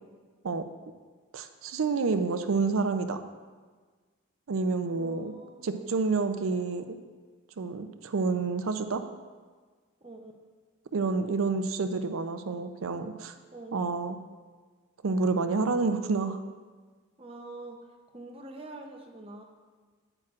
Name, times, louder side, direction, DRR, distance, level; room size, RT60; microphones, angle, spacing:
voice 1, 1.3-3.2 4.5-5.3 5.6-7.0 7.6-9.0 10.9-13.3 13.7-14.2 15.0-16.4, right 4 dB, 85° right, 8 dB, 0.5 m, -28 dB
voice 2, 4.8-5.9 10.0-10.3 13.5-13.8 17.2-19.4, right 2 dB, 25° right, 2 dB, 0.7 m, -45 dB
8.8 x 8.7 x 2.4 m, 1.5 s
head